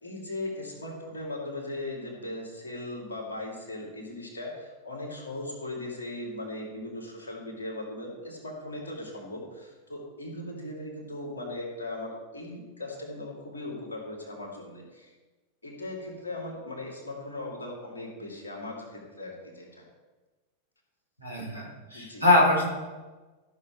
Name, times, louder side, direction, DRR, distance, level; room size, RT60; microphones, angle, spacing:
voice 1, 0.0-15.1 15.6-19.8 21.9-22.3, left 1 dB, 75° left, -1 dB, 3.0 m, -38 dB
voice 2, 21.2-22.7, left 2 dB, 90° right, -4 dB, 3.5 m, -23 dB
14.0 x 6.5 x 4.5 m, 1.3 s
figure-of-eight pair, 90°, 0 cm